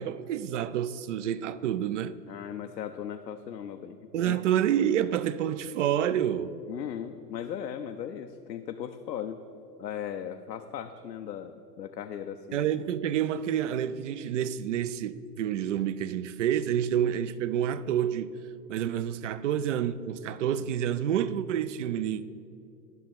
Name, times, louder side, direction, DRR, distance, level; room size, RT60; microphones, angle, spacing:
voice 1, 0.0-2.1 4.1-6.6 12.5-18.3 18.7-22.2, right 10 dB, 50° right, 0.5 m, -28 dB
voice 2, 2.3-4.0 4.2-4.4 6.7-9.4 9.8-12.6, left 9 dB, 80° left, 0.7 m, -37 dB
11.0 x 6.0 x 5.9 m
figure-of-eight pair, 110°, 50 cm